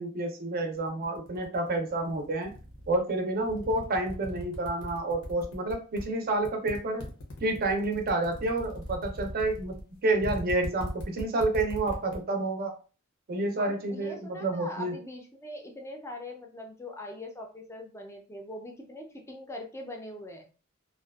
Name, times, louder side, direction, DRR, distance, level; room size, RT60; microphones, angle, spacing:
voice 1, 0.0-2.5 2.9-7.1 7.4-12.7 13.3-15.0, right 2 dB, 45° right, 4 dB, 0.5 m, -29 dB
sound 1, 0.8-3.0 3.4-6.0 6.4-12.2, equal, 85° left, 0.7 m, -39 dB
voice 2, 13.6-20.5, left 1 dB, 15° left, 2 dB, 0.4 m, -42 dB
2.5 x 2.2 x 2.3 m, 0.36 s
head